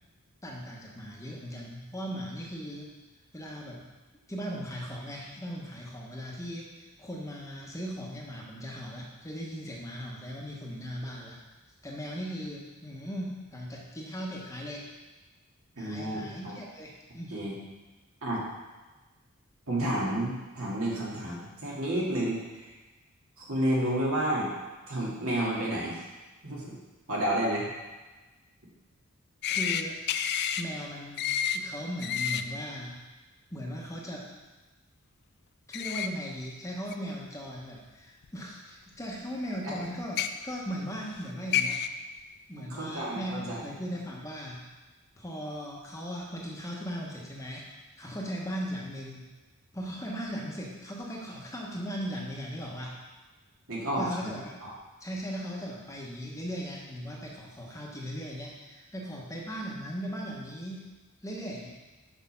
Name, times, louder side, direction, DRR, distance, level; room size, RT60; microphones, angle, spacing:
voice 1, 0.4-2.9 3.3-3.8 4.3-11.4 11.8-14.9 15.8-17.4 29.5-30.0 30.6-33.0 33.5-34.3 35.7-41.8 42.5-44.7 45.2-47.6 48.0-49.3 49.7-53.0 54.0-54.6 55.0-60.9 61.2-61.7, equal, 15° left, -3 dB, 1.1 m, -38 dB
voice 2, 15.8-16.5 17.3-17.5 18.2-18.4 19.7-22.7 23.4-24.5 24.9-26.0 26.4-26.8 27.1-27.7 39.6-39.8 42.6-43.6 53.7-54.3 54.6-54.7, right 1 dB, 70° right, -5 dB, 2.2 m, -30 dB
sound 1, 29.4-29.8 30.1-30.6 31.2-31.6 32.0-32.4 35.7-36.1 36.9-37.0 38.2-38.3 40.0-40.3 41.2-41.3 41.5-41.9, left 9 dB, 50° left, 0.4 m, -29 dB
6.5 x 5.1 x 5.6 m, 1.2 s
head